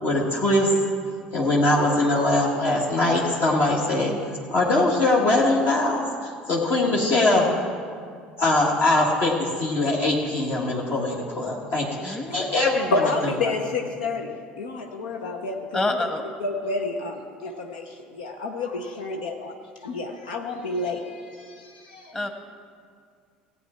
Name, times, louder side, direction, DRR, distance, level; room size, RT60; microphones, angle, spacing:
voice 1, 0.0-0.7 1.3-4.1 4.5-7.5 8.4-13.3, left 2 dB, 50° left, -4 dB, 1.6 m, -22 dB
voice 2, 12.0-12.5 15.7-16.2 22.1-22.3, left 2 dB, 15° left, 5 dB, 1.4 m, -27 dB
voice 3, 12.9-16.1 16.4-19.5 19.8-22.1, left 3 dB, 80° left, 3 dB, 0.8 m, -29 dB
16.0 x 8.6 x 4.3 m, 2.2 s
hypercardioid pair, 65°, 4 cm